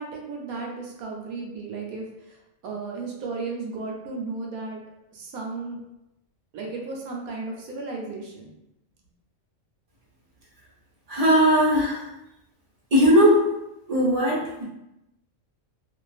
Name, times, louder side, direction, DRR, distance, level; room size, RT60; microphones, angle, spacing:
voice 1, 0.0-2.4 2.6-4.8 5.1-5.8 6.5-8.5, right 3 dB, 90° right, -1 dB, 1.1 m, -34 dB
voice 2, 11.1-12.0 12.9-13.4 13.9-14.6, equal, 35° right, -7 dB, 0.7 m, -18 dB
2.4 x 2.4 x 2.3 m, 0.90 s
omnidirectional pair, 1.5 m